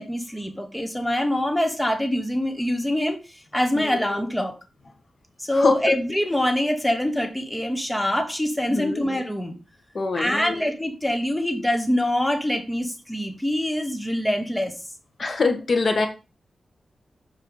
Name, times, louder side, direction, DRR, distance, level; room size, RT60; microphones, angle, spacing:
voice 1, 0.0-4.5 5.4-9.6 10.1-14.7, left 1 dB, 5° left, 6 dB, 1.3 m, -24 dB
voice 2, 8.7-9.0 9.9-10.5 15.2-16.1, left 3 dB, 50° left, 6 dB, 1.7 m, -23 dB
7.3 x 6.8 x 4.1 m, 0.30 s
wide cardioid pair, 95°, 0 cm